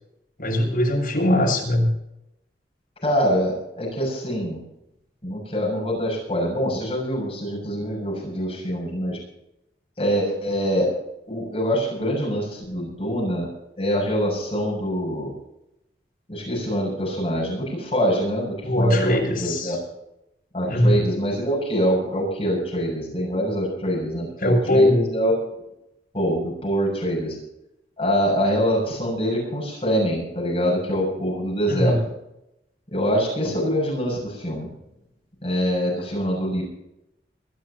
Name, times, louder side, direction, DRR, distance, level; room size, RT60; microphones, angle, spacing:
voice 1, 0.4-1.9 18.6-19.8 20.7-21.0 24.4-25.0 31.7-32.0, left 1 dB, 50° left, -1 dB, 7.3 m, -20 dB
voice 2, 3.0-4.6 5.2-9.2 10.0-10.9 11.3-13.5 13.8-15.3 16.3-19.8 20.5-25.3 26.1-27.4 28.0-32.0 32.9-34.7 35.4-36.6, equal, 30° left, -3 dB, 7.1 m, -24 dB
24.0 x 14.5 x 2.9 m, 0.84 s
head